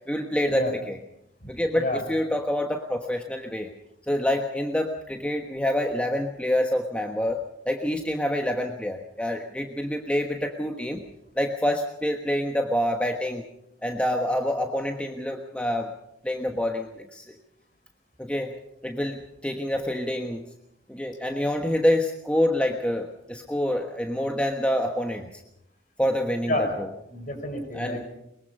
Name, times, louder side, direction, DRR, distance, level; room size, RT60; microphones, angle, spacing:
voice 1, 0.1-1.0 1.5-3.7 4.1-7.4 7.7-11.0 11.4-13.4 13.8-15.9 16.2-17.2 18.2-18.6 18.8-20.4 20.9-25.3 26.0-26.9 27.7-28.0, left 1 dB, 5° left, 3 dB, 1.3 m, -27 dB
voice 2, 26.5-26.8 27.1-28.2, left 1 dB, 45° left, 6 dB, 5.1 m, -29 dB
22.5 x 22.0 x 5.4 m, 0.79 s
head